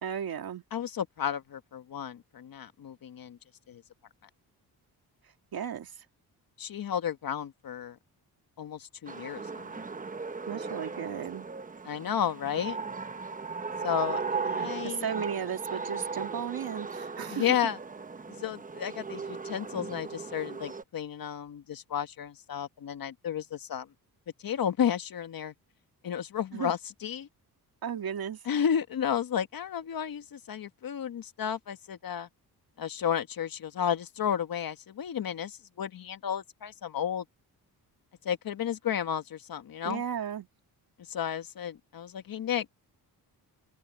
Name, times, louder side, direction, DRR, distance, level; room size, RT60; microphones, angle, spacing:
voice 1, 0.0-0.6 5.5-5.9 10.5-11.5 14.8-17.6 26.5-26.7 27.8-28.4 39.8-40.5, right 8 dB, 65° right, 2.3 m, -35 dB
voice 2, 0.7-3.4 3.7-3.8 6.6-8.0 8.6-9.8 11.8-12.8 13.8-15.1 17.3-17.8 18.3-23.9 24.4-25.5 26.0-27.3 28.4-32.3 32.8-37.2 38.2-40.0 41.0-42.7, left 9 dB, 60° left, 1.5 m, -32 dB
sound 1, 9.1-20.8, right 5 dB, 20° right, 0.8 m, -37 dB
open air
cardioid pair, 110°, 39 cm